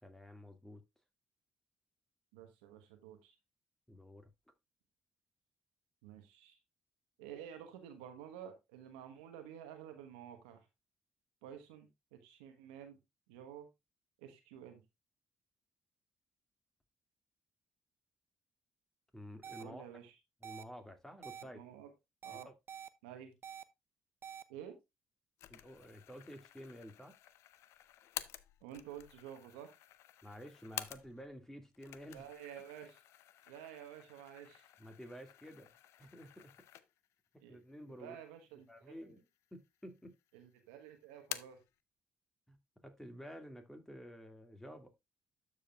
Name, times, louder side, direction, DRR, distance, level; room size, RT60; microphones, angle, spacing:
voice 1, 0.0-0.8 3.9-4.3 19.1-19.9 20.4-21.6 22.3-22.5 25.5-27.2 30.2-32.3 34.8-35.7 36.0-36.5 37.3-38.2 38.7-40.2 42.5-44.9, equal, 10° left, 2.1 m, -51 dB
voice 2, 2.3-3.3 6.0-6.5 7.2-10.6 11.4-13.0 13.3-13.7 14.2-14.8 19.6-20.1 21.4-21.9 22.2-22.5 23.0-23.3 24.5-24.8 28.6-29.8 32.1-33.0 33.5-34.7 37.4-37.6 38.0-39.0 40.3-41.6, right 9 dB, 90° right, 1.2 m, -51 dB
sound 1, 19.4-19.6 20.4-20.6 21.2-21.4 22.2-22.9 23.4-23.6 24.2-24.4, right 8 dB, 50° right, 0.7 m, -47 dB
sound 2, 25.4-31.4 31.7-37.2 37.6-37.7 38.5-39.2 39.5-40.3 40.6-41.7, left 13 dB, 75° left, 0.5 m, -50 dB
12.5 x 4.9 x 2.3 m
hypercardioid pair, 50°, 5 cm